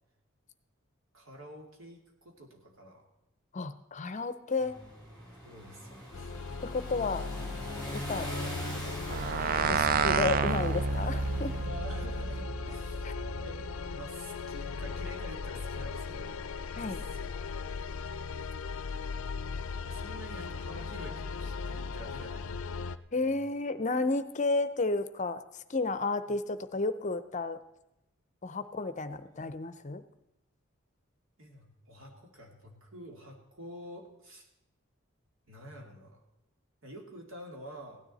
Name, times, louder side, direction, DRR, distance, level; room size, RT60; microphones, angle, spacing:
voice 1, 1.1-3.1 5.4-6.4 9.7-9.9 11.5-13.2 13.4-16.4 16.8-17.6 19.8-22.7 23.1-23.4 26.3-26.4 29.2-29.6 31.4-34.5 35.5-36.2 36.8-38.0, equal, 75° right, 1 dB, 2.3 m, -48 dB
voice 2, 3.5-4.8 6.6-7.2 7.9-8.3 9.7-9.8 10.0-11.5 16.8-17.0 23.1-25.4 25.7-27.6 28.4-30.0, left 3 dB, 35° left, 12 dB, 0.6 m, -32 dB
sound 1, 4.6-11.6, equal, 25° right, 4.9 m, -41 dB
sound 2, 6.1-23.0, left 4 dB, 85° left, 0.5 m, -38 dB
sound 3, 9.1-13.8, right 6 dB, 45° right, 0.3 m, -31 dB
16.5 x 10.0 x 4.1 m, 0.90 s
head